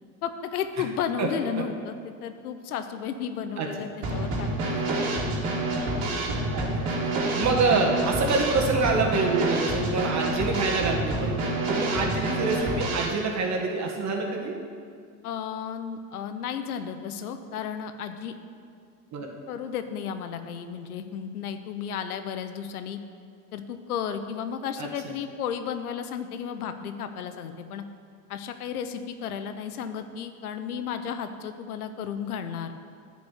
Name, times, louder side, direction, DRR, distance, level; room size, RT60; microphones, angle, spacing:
voice 1, 0.2-5.4 15.2-18.3 19.5-23.0 23.5-27.8 28.3-32.8, left 7 dB, 80° left, 9 dB, 0.8 m, -33 dB
Drum kit / Snare drum, 4.0-13.1, right 2 dB, 55° right, 2.4 m, -28 dB
voice 2, 6.5-14.6 19.1-19.3 24.8-25.1, right 3 dB, 40° right, 1 dB, 2.0 m, -26 dB
10.0 x 5.2 x 7.9 m, 2.2 s
hypercardioid pair, 80°, 44 cm